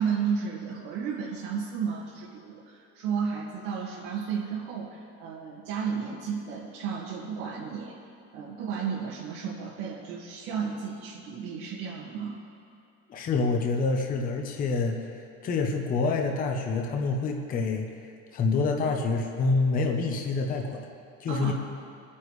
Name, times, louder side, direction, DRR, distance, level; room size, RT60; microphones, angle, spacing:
voice 1, 0.0-7.9 8.3-12.4 21.3-21.5, right 6 dB, 75° right, -5 dB, 2.0 m, -33 dB
voice 2, 13.1-15.0 15.4-17.9 18.3-20.8 21.2-21.5, left 3 dB, 25° left, 2 dB, 0.8 m, -27 dB
24.5 x 9.8 x 3.2 m, 2.5 s
cardioid pair, 175°, 37 cm